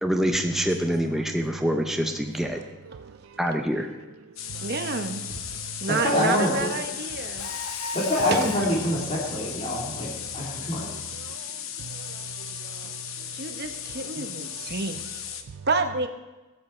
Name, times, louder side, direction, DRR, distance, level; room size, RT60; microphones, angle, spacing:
voice 1, 0.0-2.6 3.4-3.9, equal, ahead, 0.6 m, -25 dB
voice 2, 2.9-3.4 4.5-4.7 5.5-5.7 7.3-7.5 10.2-13.4 14.2-14.3 14.6-14.7 15.5-15.7, right 7 dB, 70° right, 0.4 m, -44 dB
sound 1, 4.4-15.4, left 9 dB, 65° left, 0.9 m, -36 dB
voice 3, 4.6-5.2 5.8-7.5 8.3-8.5 13.3-16.1, right 3 dB, 45° right, 0.9 m, -29 dB
voice 4, 6.0-6.5 8.1-10.9, left 1 dB, 30° left, 2.7 m, -25 dB
Mechanisms, 7.4-8.8, left 3 dB, 90° left, 1.1 m, -36 dB
20.5 x 7.9 x 4.4 m
head